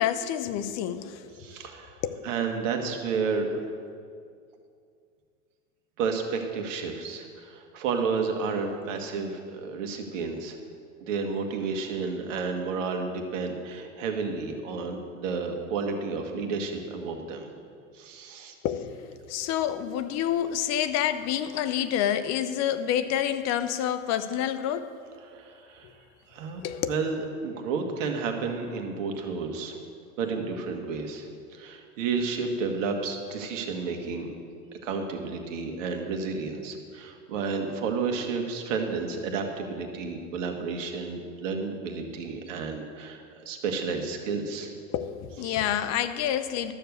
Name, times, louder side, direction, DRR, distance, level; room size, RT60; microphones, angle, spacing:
voice 1, 0.0-1.2 2.0-2.2 18.6-24.9 26.6-26.9 44.9-46.7, left 10 dB, 40° left, 11 dB, 0.8 m, -28 dB
voice 2, 1.4-2.0 2.2-3.5 6.0-10.6 11.0-17.5 17.9-18.5 25.2-25.9 26.3-26.6 26.9-29.8 30.2-31.3 31.5-34.3 34.8-44.7 45.4-45.6, right 4 dB, 70° right, 4 dB, 1.7 m, -31 dB
12.5 x 6.9 x 6.7 m, 2.3 s
hypercardioid pair, 100°, 40 cm